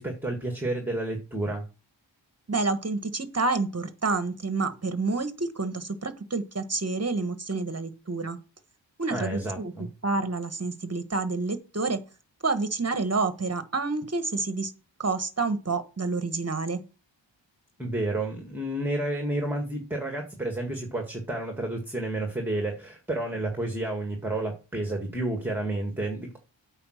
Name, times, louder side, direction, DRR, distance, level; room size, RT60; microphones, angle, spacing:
voice 1, 0.0-1.7 9.1-9.9 17.8-26.4, right 1 dB, 5° right, 3 dB, 1.9 m, -30 dB
voice 2, 2.5-8.4 9.0-9.7 10.0-12.0 12.4-14.7 15.0-16.8, right 3 dB, 35° right, 10 dB, 1.2 m, -28 dB
8.6 x 4.9 x 6.4 m, 0.34 s
wide cardioid pair, 60°, 46 cm